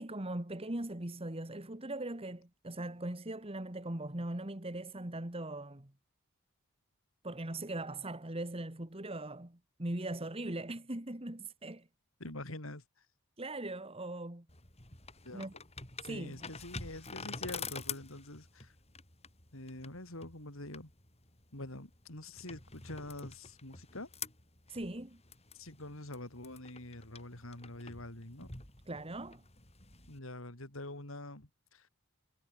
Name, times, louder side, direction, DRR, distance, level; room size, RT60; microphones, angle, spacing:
voice 1, 0.0-5.9 7.2-11.9 13.4-14.4 15.3-15.5 16.0-16.5 24.7-25.2 28.9-29.4, right 1 dB, 25° right, 1.8 m, -40 dB
voice 2, 12.2-12.8 15.2-15.5 16.0-18.7 19.5-20.9 21.5-24.1 25.5-28.5 30.1-31.9, left 1 dB, 65° left, 4.6 m, -45 dB
sound 1, 14.5-30.2, left 5 dB, 30° left, 7.4 m, -48 dB
head